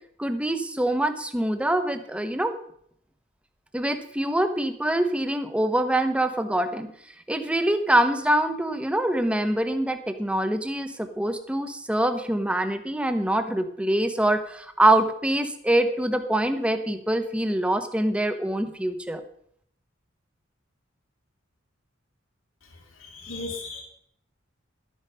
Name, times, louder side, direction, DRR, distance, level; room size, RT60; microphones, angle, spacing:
voice 1, 0.2-2.6 3.7-6.9 7.3-19.2, right 1 dB, 5° right, 8 dB, 1.0 m, -24 dB
voice 2, 23.0-23.8, left 3 dB, 85° left, 0 dB, 3.2 m, -35 dB
12.0 x 9.2 x 5.6 m, 0.67 s
head